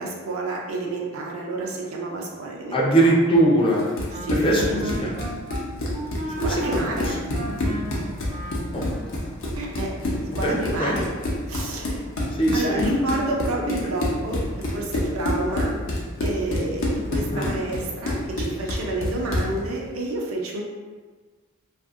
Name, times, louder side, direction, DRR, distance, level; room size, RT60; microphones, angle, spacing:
voice 1, 0.0-3.2 4.2-5.1 6.4-7.2 9.6-9.9 10.4-11.1 11.5-12.0 12.5-14.4 14.7-15.8 16.2-20.6, right 2 dB, 90° right, -1 dB, 0.5 m, -29 dB
voice 2, 2.7-3.9 4.3-5.2 6.4-7.1 8.7-9.5 10.1-11.0 12.4-13.0 13.8-13.9 17.3-17.5, right 1 dB, 25° left, -3 dB, 0.5 m, -22 dB
Run, 3.8-19.6, left 1 dB, 65° left, 0.6 m, -28 dB
Wind instrument woodwind instrument, 3.8-9.1, right 1 dB, 30° right, 0.3 m, -35 dB
2.6 x 2.5 x 2.4 m, 1.3 s
head